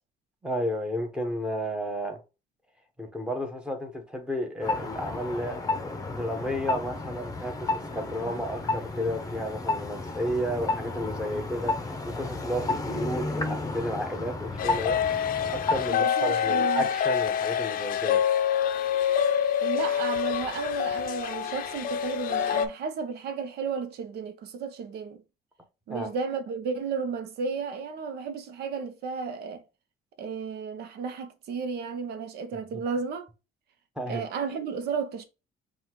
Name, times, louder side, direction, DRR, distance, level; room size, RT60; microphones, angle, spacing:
voice 1, 0.4-2.2 3.0-5.6 6.1-15.0 15.5-18.2 25.9-26.1 34.0-34.2, equal, 5° right, 1.2 m, -32 dB
sound 1, 4.6-16.0, left 3 dB, 20° left, 0.8 m, -32 dB
sound 2, 14.6-22.7, left 9 dB, 55° left, 0.5 m, -26 dB
voice 2, 15.9-16.9 19.6-25.2 25.9-29.6 30.2-33.3 34.1-35.2, right 5 dB, 70° right, 0.8 m, -33 dB
5.5 x 2.4 x 3.0 m
cardioid pair, 110°, 17 cm